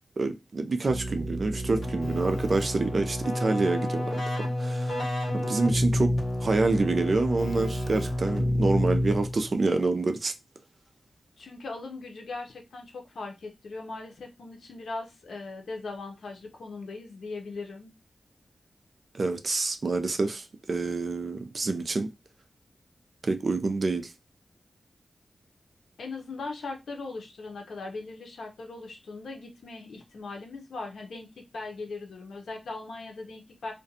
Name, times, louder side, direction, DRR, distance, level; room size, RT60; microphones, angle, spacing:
voice 1, 0.2-5.0 5.3-6.1 6.4-10.3 19.1-22.1 23.2-24.1, right 3 dB, 55° right, 0.4 m, -27 dB
Keyboard (musical), 0.8-9.6, left 1 dB, 70° left, 1.2 m, -29 dB
voice 2, 11.4-17.9 26.0-31.3 31.5-33.7, left 3 dB, 90° left, 0.6 m, -39 dB
2.5 x 2.2 x 2.6 m
wide cardioid pair, 80°, 0 cm